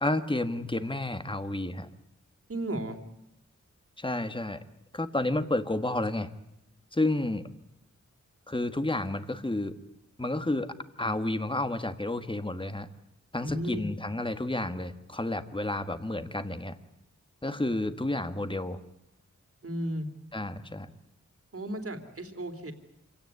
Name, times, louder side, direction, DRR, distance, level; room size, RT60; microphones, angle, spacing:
voice 1, 0.0-1.9 4.0-4.6 4.9-6.3 6.9-7.5 8.5-9.7 10.2-10.7 11.0-12.9 13.3-16.8 17.4-18.8 20.3-20.9, left 2 dB, 15° left, 10 dB, 1.6 m, -30 dB
voice 2, 2.5-3.0 13.4-13.9 19.6-20.1 21.5-22.7, right 1 dB, 50° right, 7 dB, 3.4 m, -34 dB
26.5 x 17.5 x 9.5 m, 0.86 s
wide cardioid pair, 80°, 30 cm